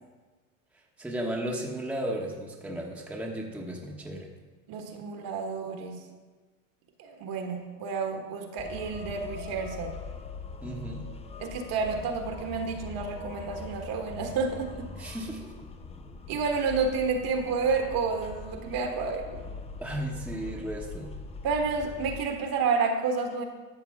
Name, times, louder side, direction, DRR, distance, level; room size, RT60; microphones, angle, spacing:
voice 1, 1.0-4.3 10.6-11.1 15.0-15.6 19.8-21.1, right 1 dB, 5° right, -1 dB, 1.1 m, -35 dB
voice 2, 4.7-6.0 7.0-9.9 11.4-15.1 16.3-19.4 21.4-23.4, right 4 dB, 50° right, 4 dB, 1.5 m, -30 dB
sound 1, 8.6-22.2, left 4 dB, 15° left, 0.5 m, -42 dB
13.0 x 6.8 x 3.6 m, 1.3 s
supercardioid pair, 115°, 46 cm